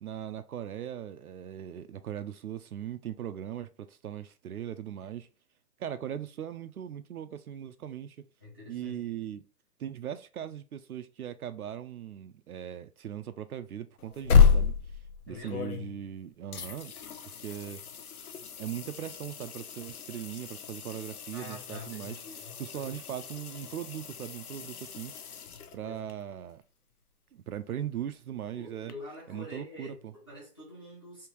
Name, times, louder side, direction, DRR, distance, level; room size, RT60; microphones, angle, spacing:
voice 1, 0.0-5.3 5.8-8.2 8.7-9.4 9.8-14.7 15.3-16.9 17.2-17.8 18.6-22.2 22.6-25.1 25.7-26.6 27.3-28.9 29.3-30.1, right 10 dB, 65° right, 0.5 m, -39 dB
voice 2, 8.4-9.0 15.3-15.7 21.3-23.2 25.8-26.0 28.5-31.3, left 1 dB, 15° left, 0.7 m, -46 dB
sound 1, 14.0-16.2 16.5-26.1 28.9-29.0, left 6 dB, 65° left, 0.7 m, -30 dB
3.5 x 2.7 x 3.0 m
hypercardioid pair, 170°, 48 cm